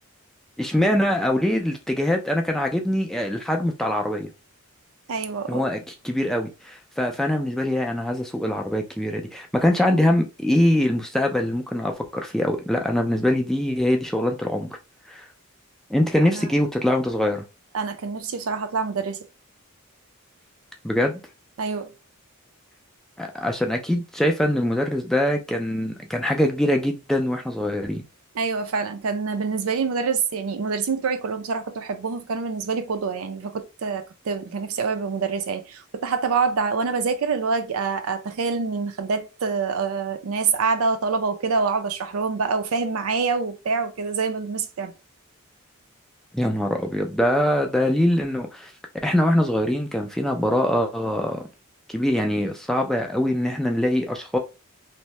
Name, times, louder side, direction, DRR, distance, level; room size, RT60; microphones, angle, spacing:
voice 1, 0.6-4.3 5.5-14.7 15.1-15.3 15.9-17.4 20.8-21.2 23.2-28.0 46.3-48.7 49.0-51.4 51.9-54.4, left 1 dB, ahead, 0.3 m, -23 dB
voice 2, 5.1-5.6 16.3-16.5 17.7-19.2 21.6-21.9 28.4-44.9, right 5 dB, 70° right, 0.5 m, -26 dB
2.7 x 2.1 x 3.1 m
head